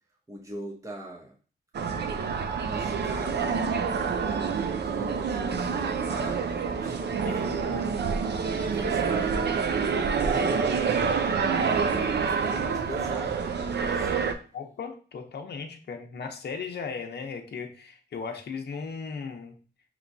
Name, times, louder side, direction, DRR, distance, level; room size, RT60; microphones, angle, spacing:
voice 1, 0.3-1.3 2.7-3.7 4.2-7.9 8.4-10.8 11.3-13.6 13.9-14.3, right 1 dB, 15° right, -1 dB, 0.8 m, -40 dB
sound 1, 1.7-14.3, right 5 dB, 70° right, 0.5 m, -27 dB
voice 2, 7.3-8.0 14.5-19.5, left 5 dB, 65° left, 3 dB, 0.7 m, -37 dB
5.9 x 3.0 x 2.6 m, 0.39 s
wide cardioid pair, 115°, 18 cm